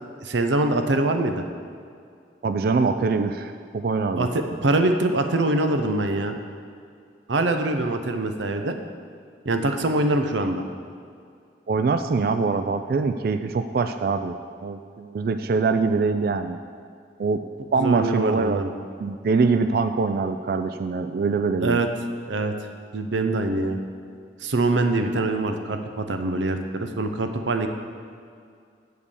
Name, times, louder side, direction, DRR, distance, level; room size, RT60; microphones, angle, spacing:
voice 1, 0.2-1.4 4.2-6.3 7.3-8.8 9.5-10.6 17.8-18.7 21.6-21.9 22.3-22.5 22.9-23.8 24.4-27.7, right 2 dB, 90° right, 6 dB, 0.7 m, -24 dB
voice 2, 2.4-4.3 11.7-14.3 14.6-16.6 17.2-17.4 17.7-18.7 19.0-21.8, right 4 dB, 55° right, 8 dB, 0.3 m, -23 dB
8.0 x 5.2 x 7.0 m, 2.3 s
head